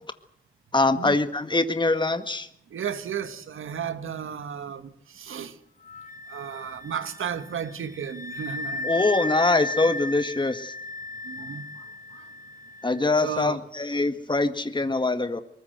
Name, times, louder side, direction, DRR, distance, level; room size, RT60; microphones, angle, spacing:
voice 1, 0.7-2.5 8.8-10.7 12.8-15.4, left 2 dB, 20° left, 1.7 m, -23 dB
voice 2, 2.7-5.6 6.3-9.0 11.2-11.8 12.1-12.3 13.2-13.6, right 7 dB, 75° right, 1.7 m, -34 dB
Wind instrument woodwind instrument, 5.8-13.3, left 2 dB, 40° left, 0.9 m, -35 dB
23.5 x 20.0 x 8.0 m
cardioid pair, 50°, 21 cm